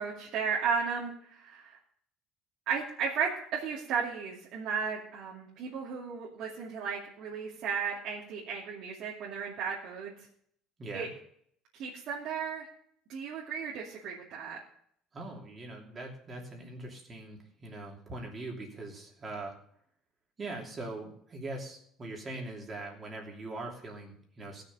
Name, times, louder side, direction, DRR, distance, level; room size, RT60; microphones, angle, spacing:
voice 1, 0.0-1.8 2.7-10.1 10.9-11.1 11.8-12.7 13.1-14.6, right 6 dB, 55° right, -5 dB, 2.5 m, -34 dB
voice 2, 15.1-19.5 20.4-24.6, right 2 dB, 25° right, 0 dB, 2.9 m, -41 dB
18.0 x 6.6 x 5.4 m, 0.67 s
cardioid pair, 155°, 0 cm